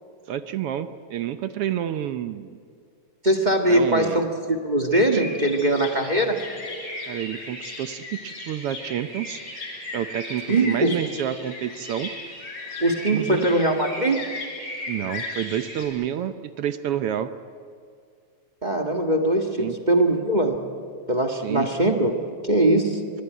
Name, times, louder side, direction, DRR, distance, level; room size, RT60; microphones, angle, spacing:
voice 1, 0.3-2.6 3.7-4.2 5.1-5.2 7.1-9.4 9.9-12.1 13.1-13.5 14.9-17.3 19.6-19.8 21.3-21.7, right 10 dB, 75° right, 10 dB, 1.4 m, -29 dB
voice 2, 3.2-6.4 10.5-10.9 12.8-14.2 18.6-20.5 21.1-22.2 22.4-23.0, right 1 dB, 25° right, 4 dB, 0.9 m, -21 dB
sound 1, 5.1-15.9, left 2 dB, 55° left, 6.2 m, -36 dB
23.5 x 22.0 x 9.3 m, 2.3 s
omnidirectional pair, 3.4 m